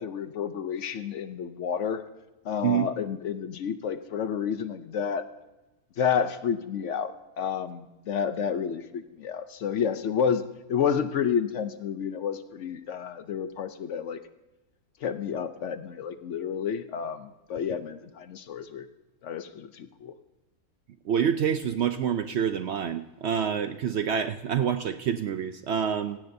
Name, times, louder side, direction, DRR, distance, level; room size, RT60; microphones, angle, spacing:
voice 1, 0.0-2.0 2.4-5.2 6.0-10.4 10.7-14.2 15.0-18.9 19.2-20.1, left 7 dB, 65° left, 11 dB, 0.9 m, -30 dB
voice 2, 21.0-26.2, right 8 dB, 65° right, 10 dB, 0.7 m, -27 dB
16.5 x 16.5 x 2.7 m, 1.1 s
omnidirectional pair, 1.5 m